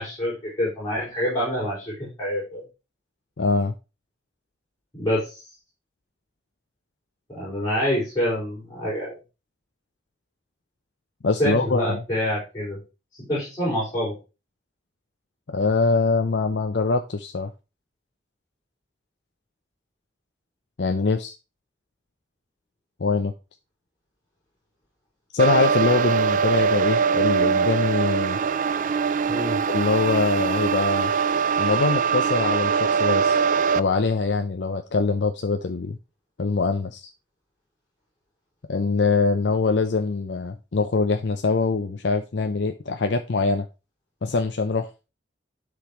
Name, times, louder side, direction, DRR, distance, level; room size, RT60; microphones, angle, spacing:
voice 1, 0.0-2.6 4.9-5.4 7.3-9.2 11.4-12.8 13.3-14.2 29.3-29.6, equal, 25° left, 5.1 m, -26 dB
voice 2, 3.4-3.7 11.2-12.0 15.5-17.5 20.8-21.3 23.0-23.3 25.3-28.4 29.7-31.1 31.6-33.4 33.7-36.0 36.4-37.1 38.7-43.7 44.2-45.0, left 4 dB, 70° left, 0.6 m, -23 dB
sound 1, 25.4-33.8, right 6 dB, 45° right, 0.3 m, -22 dB
11.5 x 5.2 x 3.0 m
head